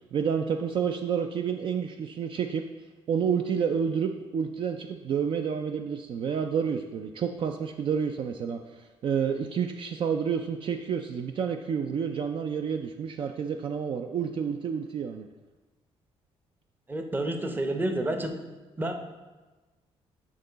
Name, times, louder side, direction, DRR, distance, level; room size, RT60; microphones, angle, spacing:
voice 1, 0.1-2.6 3.1-15.3, right 7 dB, 50° right, 5 dB, 0.4 m, -29 dB
voice 2, 16.9-18.4 18.8-19.0, right 1 dB, 15° right, 5 dB, 0.7 m, -29 dB
8.8 x 3.8 x 4.0 m, 1.2 s
cardioid pair, 105°, 11 cm